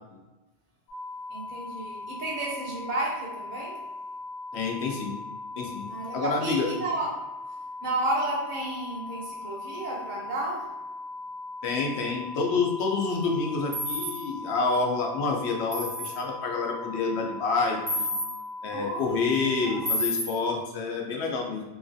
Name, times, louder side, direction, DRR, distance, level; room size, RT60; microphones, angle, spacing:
sound 1, 0.9-19.9, left 2 dB, 45° left, 0.8 m, -39 dB
voice 1, 1.3-3.8 5.9-7.1 7.8-10.7 18.7-19.2 19.5-19.9, right 2 dB, 50° right, -3 dB, 0.8 m, -32 dB
voice 2, 4.5-5.2 5.6-5.9 6.1-6.7 11.6-18.1 18.6-21.6, left 4 dB, 80° left, 1 dB, 0.9 m, -28 dB
sound 2, 13.7-14.1 15.7-16.1 17.9-18.2 19.8-20.2, left 1 dB, 15° right, 0.7 m, -29 dB
3.0 x 2.4 x 2.5 m, 1.1 s
omnidirectional pair, 1.1 m